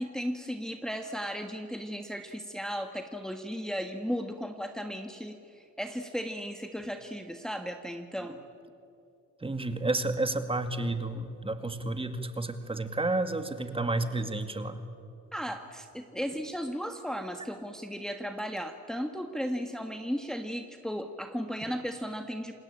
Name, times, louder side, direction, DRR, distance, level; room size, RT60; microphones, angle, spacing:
voice 1, 0.0-8.4 15.3-22.5, equal, ahead, 5 dB, 1.5 m, -35 dB
voice 2, 9.4-14.8, right 2 dB, 20° right, 8 dB, 2.1 m, -31 dB
28.0 x 19.5 x 8.8 m, 2.5 s
cardioid pair, 90°, 30 cm